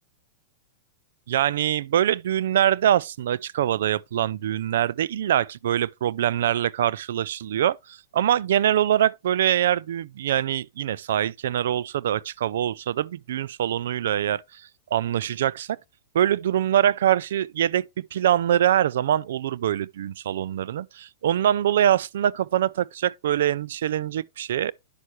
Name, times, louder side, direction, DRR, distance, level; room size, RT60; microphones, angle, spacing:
voice 1, 1.3-7.8 8.1-14.4 14.9-15.8 16.1-24.7, right 11 dB, 75° right, 0.3 m, -23 dB
9.9 x 6.4 x 3.1 m
hypercardioid pair, 135°, 0 cm